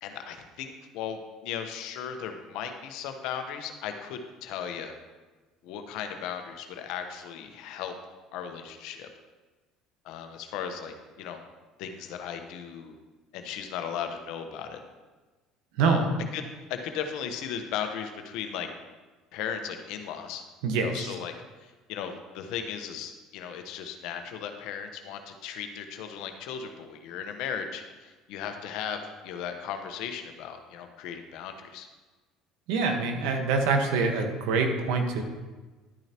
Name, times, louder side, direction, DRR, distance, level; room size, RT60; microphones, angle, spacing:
voice 1, 0.0-5.0 5.6-7.9 8.3-9.1 10.0-11.4 11.8-12.9 13.3-14.8 15.8-16.0 16.3-16.4 16.7-18.7 19.3-20.4 20.8-21.3 21.6-31.9, left 8 dB, 70° left, 6 dB, 1.0 m, -36 dB
voice 2, 20.6-21.1 32.7-35.2, right 4 dB, 75° right, 4 dB, 1.3 m, -25 dB
11.5 x 8.9 x 3.0 m, 1.3 s
hypercardioid pair, 75°, 0 cm